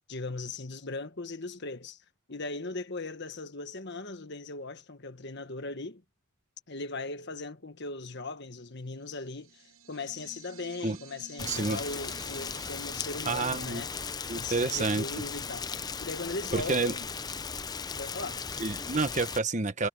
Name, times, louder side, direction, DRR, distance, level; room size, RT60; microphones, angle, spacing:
voice 1, 0.1-2.0 2.3-6.0 6.7-13.9 14.3-15.7 16.0-17.1 18.0-18.5, left 3 dB, 50° left, 1.5 m, -38 dB
sound 1, 9.0-14.4, right 5 dB, 80° right, 7.4 m, -53 dB
Rain, 11.4-19.4, left 5 dB, 20° left, 0.5 m, -37 dB
voice 2, 11.4-11.8 13.2-13.8 14.3-15.0 16.5-16.9 18.6-19.9, right 3 dB, 35° right, 1.3 m, -29 dB
head